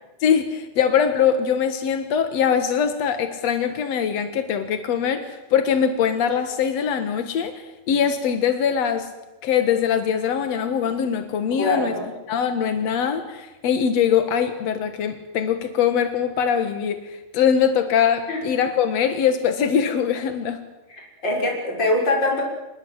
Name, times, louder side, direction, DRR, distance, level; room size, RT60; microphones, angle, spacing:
voice 1, 0.2-9.1 9.4-11.9 12.3-20.6, left 8 dB, 70° left, 7 dB, 1.5 m, -22 dB
voice 2, 11.6-12.0 18.3-18.4 21.0-22.4, left 2 dB, 20° left, -1 dB, 6.6 m, -23 dB
27.5 x 20.5 x 8.0 m, 1.0 s
omnidirectional pair, 5.5 m